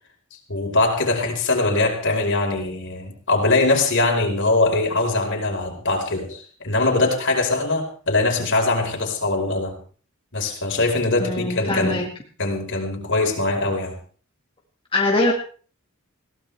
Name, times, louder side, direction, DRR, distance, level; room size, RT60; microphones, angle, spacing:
voice 1, 0.3-9.8 10.3-12.0 12.4-14.0, left 2 dB, 60° left, 1 dB, 4.9 m, -22 dB
voice 2, 11.2-12.1 14.9-15.3, left 2 dB, 25° left, -1 dB, 2.1 m, -22 dB
22.0 x 16.5 x 3.5 m, 0.41 s
head